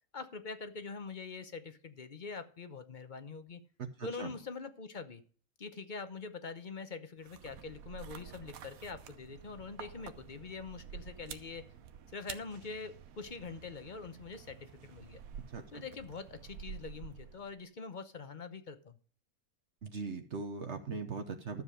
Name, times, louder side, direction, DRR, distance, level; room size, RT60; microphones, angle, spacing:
voice 1, 0.1-3.6 4.0-5.2 5.6-11.7 12.1-15.2 15.7-19.0, left 4 dB, 40° left, 9 dB, 0.9 m, -44 dB
voice 2, 3.8-4.3 15.5-15.8 19.8-21.6, right 4 dB, 55° right, 5 dB, 1.2 m, -40 dB
sound 1, 7.2-17.6, right 8 dB, 80° right, 1.2 m, -50 dB
12.5 x 7.3 x 4.9 m, 0.43 s
omnidirectional pair, 1.5 m